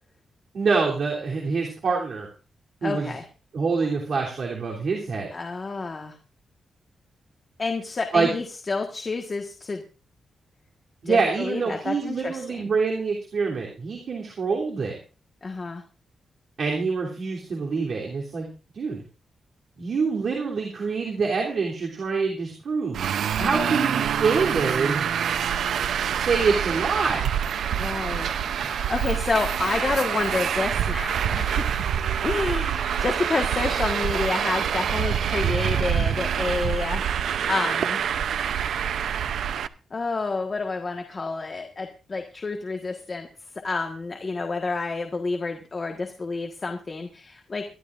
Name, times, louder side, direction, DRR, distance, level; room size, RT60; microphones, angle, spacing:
voice 1, 0.5-2.3 2.8-3.2 3.5-5.3 8.1-8.3 11.0-14.9 16.6-18.5 18.7-19.0 19.8-23.0 23.4-25.1 26.1-27.3 28.6-28.7, right 4 dB, 50° right, -2 dB, 3.2 m, -25 dB
voice 2, 2.8-3.2 5.3-6.2 7.6-9.8 11.0-12.7 15.4-15.8 23.4-23.8 27.8-28.3 28.6-31.7 32.2-38.0 39.9-43.3 43.6-47.6, left 3 dB, 30° left, 3 dB, 1.5 m, -29 dB
Traffic noise roadway noise, 22.9-39.7, right 8 dB, 80° right, 0.6 m, -26 dB
23.5 x 12.5 x 2.5 m, 0.33 s
wide cardioid pair, 175°, 0 cm